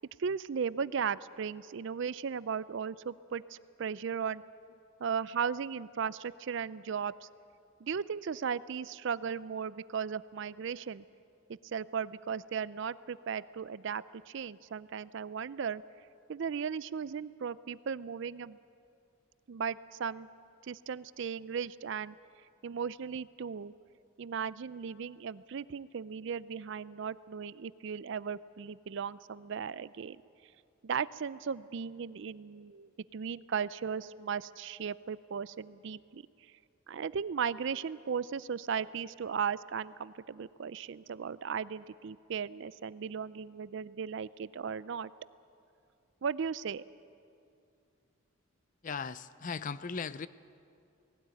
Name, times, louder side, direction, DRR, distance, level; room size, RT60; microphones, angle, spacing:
voice 1, 0.2-4.4 5.0-7.1 7.8-11.0 11.7-15.8 16.3-18.6 19.5-20.3 20.7-22.1 22.6-23.7 24.2-30.2 30.8-36.2 36.9-45.1 46.2-46.8, right 6 dB, 55° right, 18 dB, 0.4 m, -36 dB
voice 2, 48.8-50.3, left 5 dB, 35° left, 16 dB, 0.4 m, -37 dB
19.0 x 16.5 x 9.1 m, 2.5 s
head